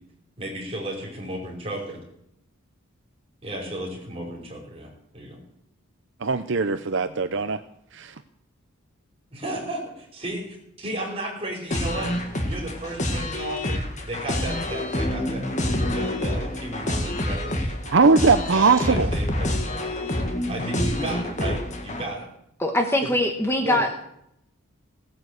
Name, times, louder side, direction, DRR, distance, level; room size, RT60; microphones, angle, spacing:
voice 1, 0.4-2.0 3.4-5.4 9.3-12.1 12.4-17.8 18.5-19.5 20.5-22.3 23.0-23.1 23.6-23.8, right 1 dB, 25° right, -2 dB, 5.1 m, -34 dB
voice 2, 6.2-7.6 7.9-8.1 17.9-19.1, right 4 dB, 60° right, 10 dB, 0.6 m, -20 dB
sound 1, 11.7-22.0, left 1 dB, 35° left, 1.7 m, -27 dB
voice 3, 22.6-24.0, left 1 dB, 10° left, 4 dB, 1.2 m, -23 dB
17.5 x 9.4 x 8.1 m, 0.76 s
head